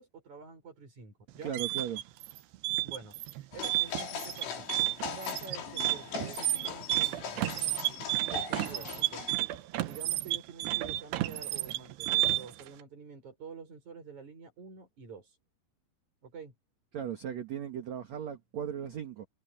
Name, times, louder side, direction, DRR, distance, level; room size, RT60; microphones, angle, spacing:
voice 1, 0.0-1.5 2.8-4.7 5.2-7.6 8.3-9.3 9.8-15.4 16.2-16.5, right 5 dB, 40° right, 7.9 m, -48 dB
sound 1, 1.3-12.6, right 17 dB, 75° right, 2.8 m, -31 dB
voice 2, 1.4-2.0 16.9-19.3, right 9 dB, 55° right, 2.1 m, -37 dB
sound 2, 3.5-9.3, left 6 dB, 80° left, 5.9 m, -40 dB
omnidirectional pair, 5.2 m